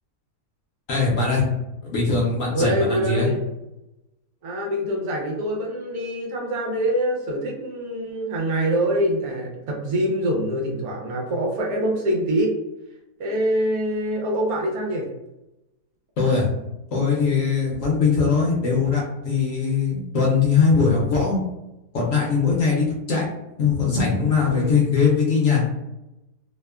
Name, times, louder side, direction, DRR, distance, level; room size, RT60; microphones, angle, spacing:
voice 1, 0.9-1.4 1.9-3.3 16.2-16.5 16.9-21.4 21.9-23.3 23.6-25.7, left 5 dB, 65° left, -3 dB, 0.9 m, -21 dB
voice 2, 2.5-3.4 4.4-12.5 13.2-15.1 24.5-24.7, equal, 70° right, -1 dB, 1.0 m, -24 dB
2.8 x 2.1 x 2.2 m, 0.93 s
omnidirectional pair, 1.7 m